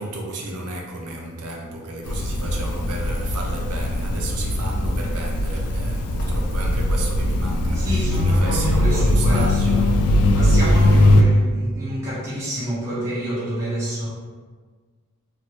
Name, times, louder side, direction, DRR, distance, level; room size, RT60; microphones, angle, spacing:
voice 1, 0.0-9.7, right 2 dB, 85° right, -1 dB, 0.5 m, -32 dB
sound 1, 2.1-11.2, left 1 dB, 85° left, 0.3 m, -20 dB
voice 2, 7.7-14.1, right 1 dB, 15° right, -9 dB, 0.5 m, -29 dB
2.6 x 2.2 x 3.0 m, 1.5 s
head